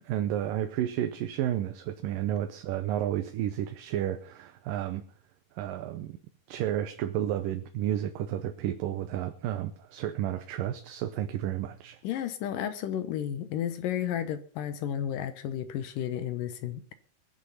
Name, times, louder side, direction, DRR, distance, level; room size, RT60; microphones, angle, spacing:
voice 1, 0.0-5.0 5.6-6.2 6.5-12.0, right 11 dB, 80° right, 7 dB, 2.5 m, -31 dB
voice 2, 12.0-16.9, left 10 dB, 80° left, 11 dB, 2.6 m, -32 dB
22.0 x 7.5 x 5.6 m, 0.44 s
omnidirectional pair, 4.0 m